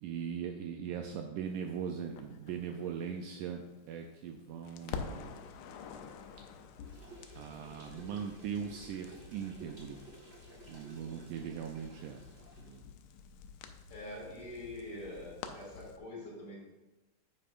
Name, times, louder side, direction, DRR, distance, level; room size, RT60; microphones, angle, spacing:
voice 1, 0.0-5.4 7.4-10.0 10.7-12.2 12.6-12.8, right 7 dB, 80° right, 3 dB, 1.9 m, -40 dB
Crackle, 2.2-4.3 4.6-16.0, left 6 dB, 85° left, 1.6 m, -48 dB
sound 1, 6.8-12.7, right 1 dB, 50° right, 0.7 m, -55 dB
voice 2, 13.9-16.6, left 1 dB, 45° left, -5 dB, 3.0 m, -44 dB
9.0 x 7.7 x 2.5 m, 1.1 s
omnidirectional pair, 4.0 m